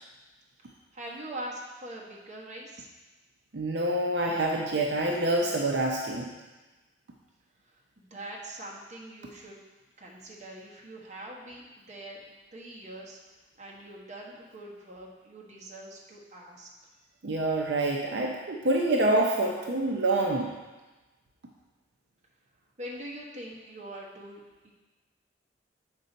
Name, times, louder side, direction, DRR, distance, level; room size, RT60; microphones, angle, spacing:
voice 1, 0.9-2.9 8.0-9.6 10.0-13.2 13.6-16.7 22.8-24.7, right 1 dB, 40° right, -3 dB, 1.3 m, -43 dB
voice 2, 3.5-6.3 17.2-20.5, right 2 dB, 70° right, -1 dB, 0.6 m, -26 dB
7.9 x 5.3 x 4.0 m, 1.2 s
head